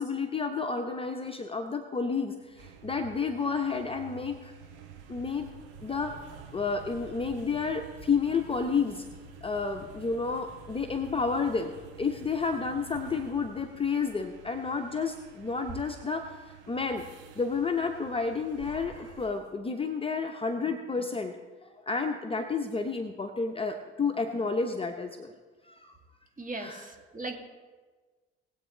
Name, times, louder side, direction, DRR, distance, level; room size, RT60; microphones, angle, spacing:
voice 1, 0.0-4.5 5.1-5.5 5.8-6.1 6.5-9.1 9.4-16.4 16.7-17.0 17.3-21.4 21.6-25.3 25.6-26.0 26.6-26.9, left 4 dB, 15° left, 5 dB, 0.9 m, -31 dB
sound 1, 2.4-19.6, right 5 dB, 60° right, 1.7 m, -49 dB
voice 2, 26.4-27.4, right 2 dB, 25° right, 2 dB, 2.2 m, -38 dB
20.0 x 8.2 x 3.1 m, 1.4 s
figure-of-eight pair, 55°, 33 cm